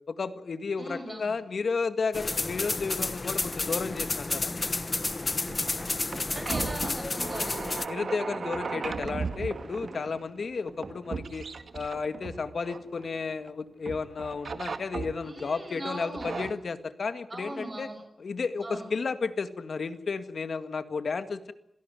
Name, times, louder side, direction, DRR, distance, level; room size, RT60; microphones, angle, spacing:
voice 1, 0.1-4.5 7.9-11.4 11.7-17.9 18.2-21.5, left 4 dB, 65° left, 11 dB, 1.9 m, -32 dB
voice 2, 0.8-1.4 6.3-7.7 15.2-16.3 17.3-18.0 18.6-18.8, right 1 dB, 30° right, 5 dB, 5.9 m, -39 dB
sound 1, 2.1-7.9, left 3 dB, 35° left, 1.2 m, -31 dB
sound 2, 5.1-13.5 13.9-15.5 16.0-16.5, right 4 dB, 60° right, 1.9 m, -37 dB
27.0 x 17.5 x 9.4 m, 0.76 s
wide cardioid pair, 105°, 0 cm